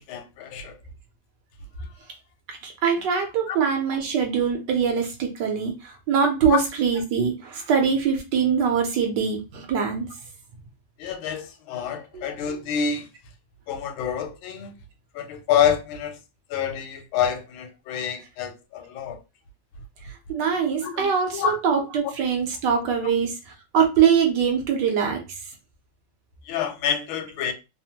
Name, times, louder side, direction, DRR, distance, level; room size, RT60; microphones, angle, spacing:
voice 1, 0.1-0.8 3.5-3.6 6.5-6.6 11.0-13.1 13.7-14.7 15.1-16.2 16.5-19.2 20.8-21.1 21.3-21.6 26.5-27.5, left 8 dB, 85° left, 1.4 m, -27 dB
voice 2, 2.5-10.1 12.1-12.3 20.1-25.2, right 7 dB, 70° right, 1.2 m, -23 dB
3.3 x 2.0 x 2.8 m
omnidirectional pair, 2.2 m